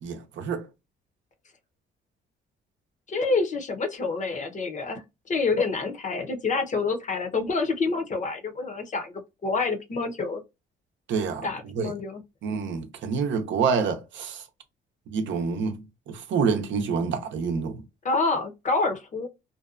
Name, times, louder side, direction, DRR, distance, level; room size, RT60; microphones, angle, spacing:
voice 1, 0.0-0.7 11.1-11.5 11.8-11.9 12.4-14.4 15.1-17.8, right 5 dB, 70° right, 0.6 m, -27 dB
voice 2, 3.1-5.0 5.3-10.4 11.4-12.2 18.0-19.3, left 3 dB, 40° left, 0.7 m, -27 dB
2.6 x 2.2 x 2.4 m
cardioid pair, 90°, 20 cm